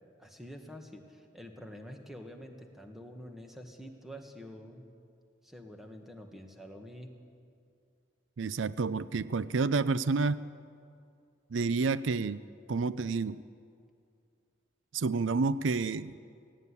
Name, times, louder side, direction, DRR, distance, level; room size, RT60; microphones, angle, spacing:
voice 1, 0.2-4.9 5.4-7.1, equal, ahead, 3 dB, 1.8 m, -47 dB
voice 2, 8.4-10.4 11.5-12.4 12.7-13.4 14.9-16.2, right 4 dB, 80° right, 16 dB, 0.5 m, -29 dB
17.5 x 16.5 x 9.9 m, 2.3 s
head